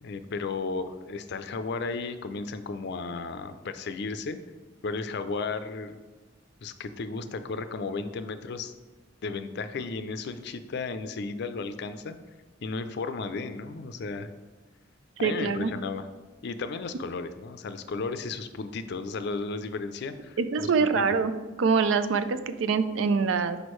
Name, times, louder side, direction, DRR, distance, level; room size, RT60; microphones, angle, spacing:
voice 1, 0.0-4.4 4.8-6.0 6.6-8.7 9.2-12.2 12.6-14.3 15.2-16.1 16.4-21.0, left 4 dB, 60° left, 10 dB, 0.4 m, -34 dB
voice 2, 15.2-15.7 20.4-21.3 21.6-23.6, right 5 dB, 85° right, 12 dB, 0.4 m, -24 dB
6.3 x 5.1 x 3.1 m, 1.3 s
head